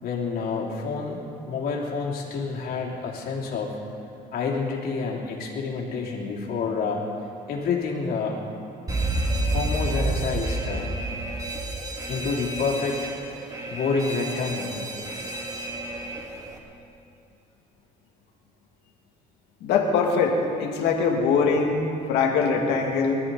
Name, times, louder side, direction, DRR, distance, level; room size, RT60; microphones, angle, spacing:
voice 1, 0.0-3.8 4.3-7.0 7.5-8.4 9.5-10.9 12.1-13.0 13.4-14.7, left 4 dB, 65° left, -2 dB, 3.3 m, -28 dB
Alarm, 8.9-16.6, right 2 dB, 20° right, 2.4 m, -30 dB
voice 2, 19.6-23.2, left 5 dB, 85° left, 1 dB, 2.5 m, -22 dB
25.0 x 13.5 x 4.2 m, 2.6 s
cardioid pair, 110°, 17 cm